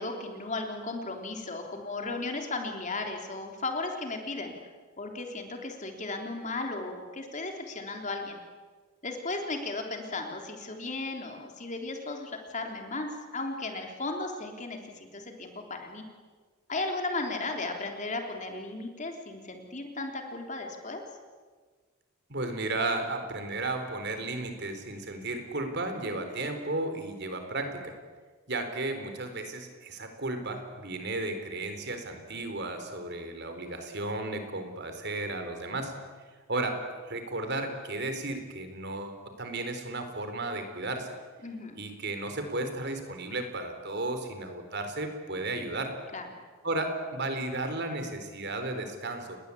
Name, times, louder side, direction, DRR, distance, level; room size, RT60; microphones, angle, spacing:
voice 1, 0.0-4.5 5.0-8.4 9.0-16.0 16.7-21.0 41.4-41.8 46.1-46.3, left 3 dB, 35° left, 3 dB, 3.4 m, -35 dB
voice 2, 22.3-27.9 28.5-35.9 36.5-36.8 37.0-41.1 41.7-45.9 46.6-49.4, right 2 dB, 50° right, 7 dB, 3.9 m, -34 dB
29.5 x 20.5 x 8.5 m, 1.5 s
head